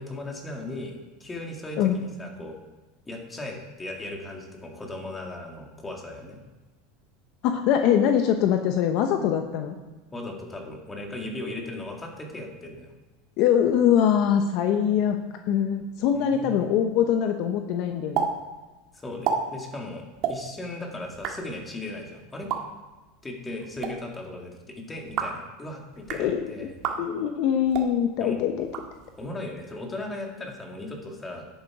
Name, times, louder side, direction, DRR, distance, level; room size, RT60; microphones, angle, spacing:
voice 1, 0.0-2.6 3.1-6.4 10.1-12.9 16.1-16.7 18.9-20.0 20.3-22.5 23.2-26.7 28.2-28.4 29.2-31.4, left 2 dB, 15° left, 1 dB, 2.0 m, -37 dB
voice 2, 7.4-9.7 13.4-15.2 15.5-18.3 26.2-26.5 27.0-28.7, left 9 dB, 55° left, 6 dB, 0.8 m, -23 dB
sound 1, 18.1-18.3 18.5-18.6 19.1-19.4 20.1-20.3 21.0-21.3 22.3-22.6 23.6-23.9 25.0-25.4 25.9-26.2 26.8-27.0 27.6-27.9 28.6-29.3, right 7 dB, 45° right, 1.6 m, -30 dB
10.5 x 8.1 x 4.8 m, 1.2 s
supercardioid pair, 135°, 0 cm